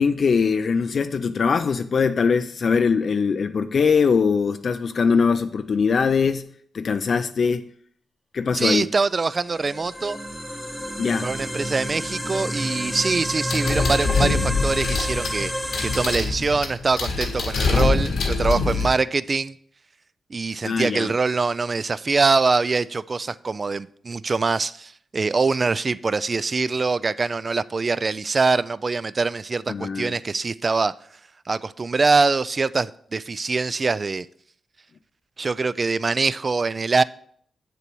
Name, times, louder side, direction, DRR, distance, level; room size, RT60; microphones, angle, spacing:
voice 1, 0.0-6.5 6.7-7.6 8.3-8.9 11.0-11.3 20.6-21.1 29.7-30.1, left 5 dB, 55° left, 0.4 m, -21 dB
voice 2, 8.5-10.2 11.2-15.5 15.8-19.5 20.3-30.9 31.5-34.3 35.4-37.0, right 4 dB, 40° right, 0.3 m, -23 dB
sound 1, 9.2-16.2, equal, ahead, 0.9 m, -29 dB
sound 2, 13.5-18.9, left 4 dB, 90° left, 1.5 m, -24 dB
8.2 x 6.8 x 4.6 m
cardioid pair, 95°, 0 cm